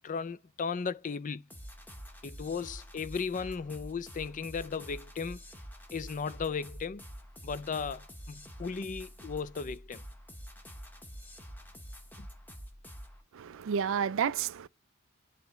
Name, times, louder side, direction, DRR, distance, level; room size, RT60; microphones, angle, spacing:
voice 1, 0.0-1.4 2.2-5.4 5.9-7.0 7.4-10.0 12.2-12.3, left 5 dB, 35° left, 0.4 m, -36 dB
sound 1, 1.5-13.2, equal, 10° left, 1.0 m, -47 dB
voice 2, 13.3-14.7, right 7 dB, 60° right, 0.4 m, -30 dB
9.9 x 3.5 x 3.1 m
head